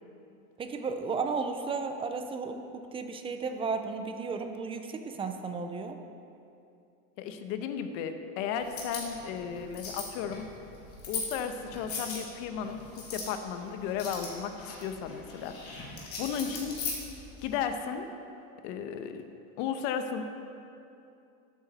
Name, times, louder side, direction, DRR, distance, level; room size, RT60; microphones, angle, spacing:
voice 1, 0.6-6.0, right 4 dB, 15° right, 6 dB, 0.4 m, -34 dB
voice 2, 7.2-10.5 11.1-16.8 17.4-18.1 18.6-19.2 19.6-20.2, left 7 dB, 60° left, 8 dB, 1.0 m, -35 dB
sound 1, 8.6-17.6, left 4 dB, 35° left, 2.5 m, -40 dB
13.0 x 8.7 x 4.1 m, 2.7 s
supercardioid pair, 145°, 41 cm